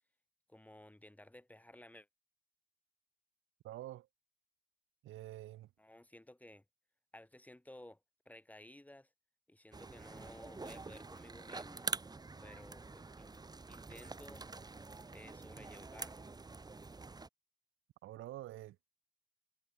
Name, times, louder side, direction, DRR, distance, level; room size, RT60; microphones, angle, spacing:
voice 1, 0.5-2.1 5.8-6.6 7.1-8.0 8.3-9.1 9.5-11.9 12.4-13.3 13.7-14.5 15.1-16.3, left 1 dB, 5° left, 7.4 m, -56 dB
voice 2, 3.6-4.1 5.0-5.7 18.0-18.8, right 15 dB, 85° right, 4.0 m, -47 dB
sound 1, 9.7-17.3, right 3 dB, 20° right, 1.3 m, -46 dB
cardioid pair, 90°, 20 cm